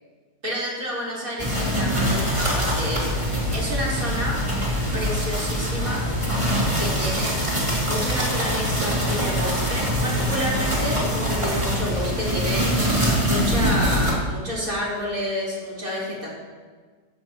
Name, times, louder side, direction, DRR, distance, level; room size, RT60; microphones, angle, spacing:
voice 1, 0.4-4.4 4.9-6.0 6.7-7.3 7.8-12.7 13.2-16.3, equal, 60° right, -6 dB, 4.4 m, -29 dB
sound 1, 1.4-14.1, equal, 20° right, 2.6 m, -23 dB
15.0 x 14.5 x 3.0 m, 1.5 s
omnidirectional pair, 1.7 m